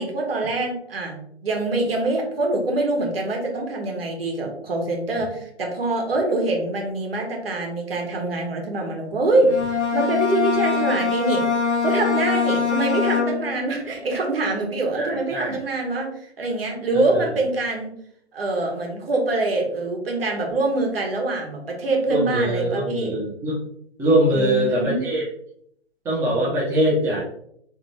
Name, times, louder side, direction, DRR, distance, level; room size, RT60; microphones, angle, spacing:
voice 1, 0.0-11.4 11.8-17.9 18.3-23.2 24.3-25.0, right 2 dB, 60° right, 1 dB, 1.2 m, -24 dB
Bowed string instrument, 9.4-13.7, left 6 dB, 85° left, 0.8 m, -23 dB
voice 2, 14.9-15.6 17.1-17.3 22.1-23.6 24.0-25.3 26.0-27.2, right 1 dB, 5° right, -7 dB, 0.7 m, -22 dB
4.0 x 3.0 x 3.2 m, 0.70 s
figure-of-eight pair, 125°, 34 cm